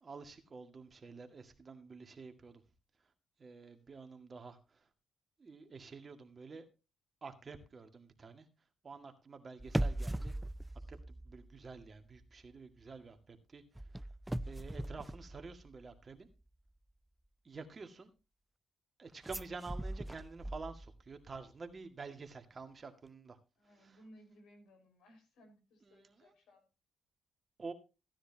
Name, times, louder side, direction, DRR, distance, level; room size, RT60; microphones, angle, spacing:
voice 1, 0.0-2.6 3.4-4.6 5.4-6.7 7.2-8.5 8.8-10.3 10.9-11.0 11.3-13.6 14.5-16.3 17.4-18.1 19.0-23.4 23.8-24.0 25.8-26.3 27.6-27.7, right 4 dB, 35° right, 6 dB, 1.9 m, -49 dB
sound 1, 9.6-11.9 12.2-12.5 13.8-16.0 19.2-21.1 21.4-21.5, right 1 dB, 10° right, 0.4 m, -39 dB
voice 2, 23.6-26.7, equal, 80° left, 5 dB, 4.9 m, -61 dB
15.5 x 10.0 x 2.8 m, 0.30 s
cardioid pair, 90°, 0 cm